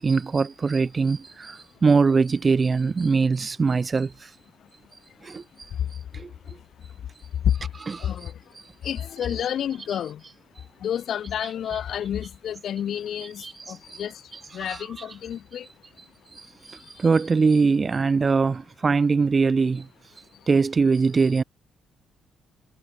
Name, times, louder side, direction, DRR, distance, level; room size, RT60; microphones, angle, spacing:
voice 1, 0.0-4.1 5.3-5.4 7.8-8.1 11.4-11.8 13.4-13.5 14.7-15.1 17.0-19.8 20.5-21.4, right 4 dB, 35° right, 3.8 m, -22 dB
voice 2, 5.1-8.6 8.8-10.2 10.6-15.7 16.7-17.0 20.3-20.5, left 9 dB, 65° left, 5.9 m, -31 dB
cardioid pair, 90°, 0 cm